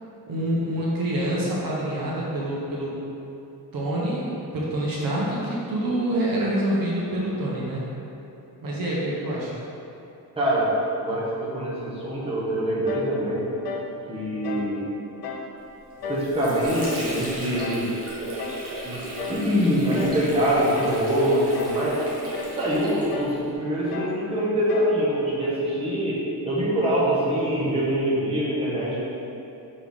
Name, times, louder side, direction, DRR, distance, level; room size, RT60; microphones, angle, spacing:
voice 1, 0.3-2.9 3.7-7.8 8.6-9.5, right 1 dB, 60° right, -5 dB, 1.2 m, -26 dB
voice 2, 10.4-10.7 11.0-13.5 14.1-14.8 16.1-17.9 18.8-19.0 19.3-22.0 22.6-29.0, equal, 15° right, -8 dB, 1.3 m, -24 dB
sound 1, 12.9-13.2 13.6-13.9 14.4-14.7 15.2-15.5 16.0-16.3 16.8-17.1 17.6-17.9 18.4-18.7 19.2-19.5 20.0-20.3 20.8-21.1 21.5-21.9 22.3-22.6 23.1-23.4 23.9-24.2 24.7-25.0, left 4 dB, 65° left, 0.7 m, -34 dB
Water / Sink (filling or washing), 15.9-23.5, right 1 dB, 35° right, 1.4 m, -35 dB
6.1 x 4.6 x 3.7 m, 2.8 s
cardioid pair, 165°, 39 cm